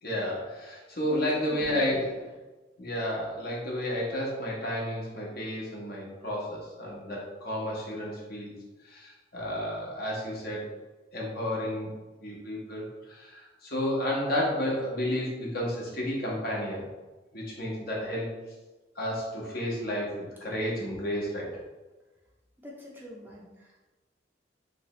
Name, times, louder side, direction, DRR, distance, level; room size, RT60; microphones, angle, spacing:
voice 1, 0.0-2.3 2.8-8.5 8.8-10.6 11.1-11.9 12.2-16.8 17.3-18.3 19.0-21.5, left 1 dB, 55° left, -4 dB, 1.0 m, -31 dB
voice 2, 1.5-2.0 22.6-23.9, equal, 10° right, -4 dB, 0.5 m, -45 dB
3.1 x 3.1 x 3.0 m, 1.2 s
head